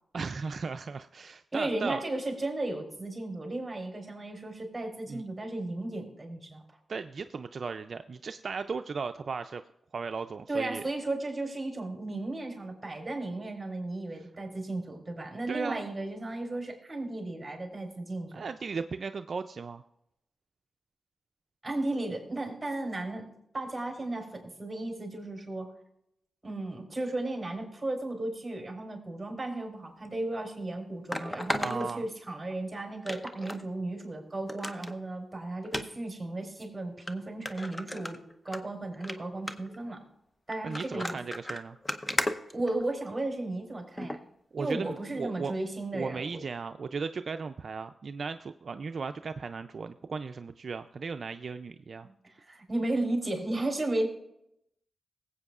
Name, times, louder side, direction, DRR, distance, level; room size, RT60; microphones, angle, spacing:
voice 1, 0.1-2.0 5.1-5.2 6.9-9.6 9.9-10.8 15.5-15.9 18.3-19.8 31.6-32.1 40.6-41.8 44.5-45.5 45.9-52.1, right 5 dB, 60° right, 8 dB, 0.4 m, -36 dB
voice 2, 1.5-6.6 10.5-18.4 21.6-25.7 26.4-38.2 38.4-40.0 40.5-41.2 42.5-44.2 44.6-46.5 52.0-52.1 52.5-54.1, right 2 dB, 15° right, 1 dB, 4.2 m, -34 dB
sound 1, 30.0-30.1 31.1-32.6 33.1-33.6 34.0-34.1 34.5-34.9 35.7-35.9 36.6-36.7 37.1-37.2 37.5-38.6 38.9-39.2 39.5-39.8 40.5-43.2 44.0-44.2 44.7-44.8, left 1 dB, 20° left, 0.8 m, -35 dB
20.0 x 8.2 x 2.4 m, 0.79 s
cardioid pair, 75°, 0 cm